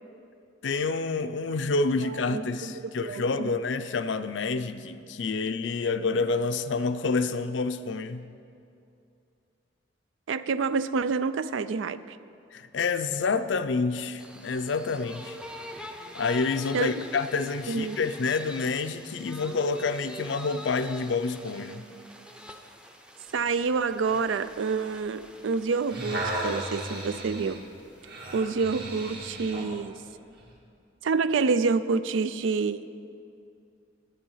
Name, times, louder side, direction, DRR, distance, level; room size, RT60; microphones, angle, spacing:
voice 1, 0.6-8.3 12.5-15.4 16.1-21.8, left 4 dB, 70° left, 11 dB, 0.5 m, -28 dB
voice 2, 2.0-3.5 10.3-12.0 16.7-16.9 17.7-18.0 23.3-27.6 28.3-30.0 31.0-32.8, right 4 dB, 80° right, 14 dB, 0.4 m, -28 dB
sound 1, 14.2-28.4, equal, 5° right, 0.6 m, -45 dB
sound 2, 25.7-29.7 30.4-30.5, right 1 dB, 55° right, 1.9 m, -35 dB
10.5 x 9.8 x 5.6 m, 2.5 s
head